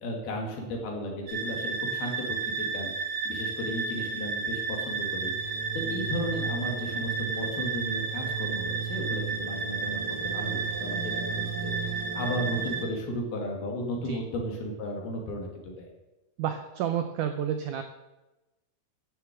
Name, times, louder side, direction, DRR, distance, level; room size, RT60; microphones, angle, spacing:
voice 1, 0.0-15.9, equal, 75° left, 0 dB, 4.3 m, -35 dB
sound 1, 1.3-12.8, right 5 dB, 45° right, 1.3 m, -32 dB
voice 2, 16.4-17.8, right 9 dB, 85° right, 7 dB, 1.8 m, -30 dB
13.5 x 6.9 x 7.6 m, 1.0 s
omnidirectional pair, 4.5 m